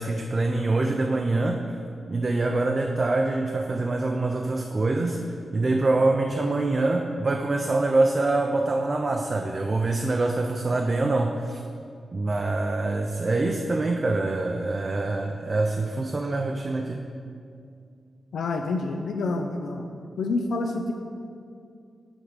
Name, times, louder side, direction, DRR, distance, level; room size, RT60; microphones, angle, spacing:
voice 1, 0.0-1.7 2.1-5.2 5.5-11.6 12.1-17.1, right 2 dB, 30° right, 3 dB, 0.4 m, -25 dB
voice 2, 18.3-19.9 20.2-20.9, left 3 dB, 85° left, 4 dB, 0.4 m, -28 dB
7.9 x 3.6 x 6.4 m, 2.4 s
wide cardioid pair, 155°, 0 cm